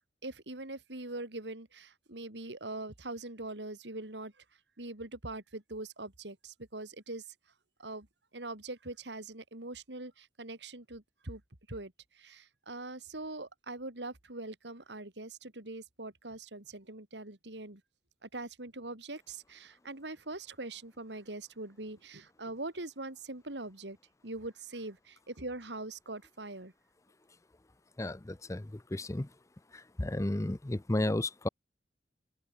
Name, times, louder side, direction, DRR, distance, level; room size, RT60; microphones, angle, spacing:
voice 1, 0.2-4.3 4.8-7.2 7.8-8.1 8.3-11.4 11.7-17.8 18.2-24.0 24.2-26.7, right 2 dB, 85° right, 3.4 m, -42 dB
voice 2, 28.0-29.3 29.7-31.5, left 1 dB, 20° left, 0.6 m, -33 dB
open air
head